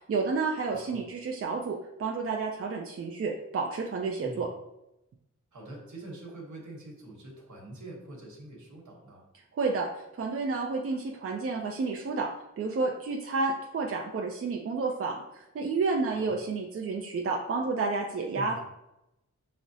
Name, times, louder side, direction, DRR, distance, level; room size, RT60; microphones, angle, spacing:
voice 1, 0.0-4.5 9.5-12.3 12.6-18.6, right 4 dB, 50° right, 0 dB, 0.4 m, -30 dB
voice 2, 0.7-1.0 4.2-4.5 5.5-9.2 16.1-16.4 18.3-18.6, right 1 dB, 80° right, -1 dB, 1.1 m, -44 dB
5.9 x 2.0 x 2.7 m, 0.87 s
wide cardioid pair, 130°, 30 cm